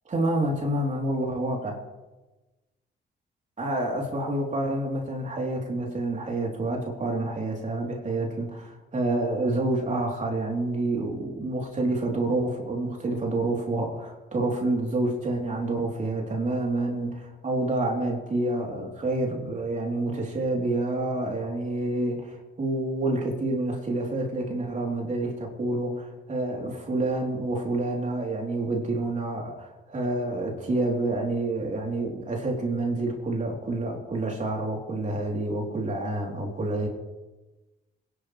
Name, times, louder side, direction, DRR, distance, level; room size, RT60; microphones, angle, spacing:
voice 1, 0.1-1.8 3.6-36.9, right 2 dB, 40° right, -1 dB, 3.7 m, -28 dB
26.5 x 11.5 x 3.4 m, 1.1 s
cardioid pair, 90°, 20 cm